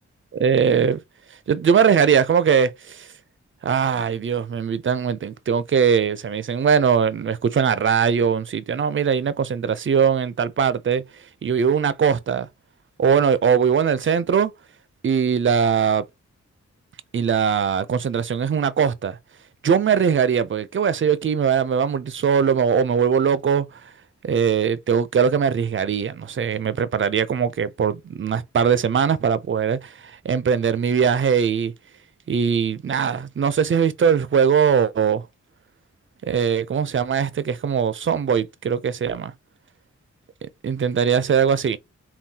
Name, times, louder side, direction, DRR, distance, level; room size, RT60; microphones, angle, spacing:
voice 1, 0.3-1.0 1.5-3.1 3.6-11.0 11.4-12.5 13.0-14.5 15.0-16.0 17.1-19.2 19.6-23.7 24.2-31.7 32.3-35.2 36.2-39.3 40.4-41.8, right 7 dB, 40° right, 0.5 m, -21 dB
3.7 x 2.2 x 2.8 m
cardioid pair, 45°, 30 cm